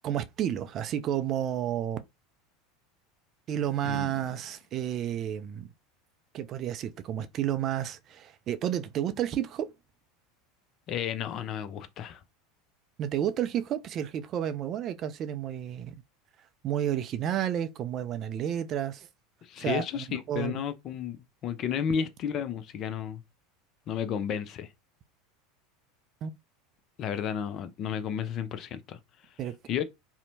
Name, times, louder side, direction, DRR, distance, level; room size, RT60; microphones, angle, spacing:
voice 1, 0.0-2.0 3.5-5.7 6.3-9.7 13.0-16.0 16.6-19.1 19.6-20.6 26.2-26.3 29.4-29.5, right 10 dB, 45° right, 0.3 m, -31 dB
voice 2, 3.8-4.2 10.9-12.2 19.4-21.2 21.4-23.2 23.9-24.7 27.0-29.0 29.7-29.8, left 8 dB, 45° left, 0.4 m, -32 dB
2.7 x 2.1 x 2.7 m
hypercardioid pair, 80°, 0 cm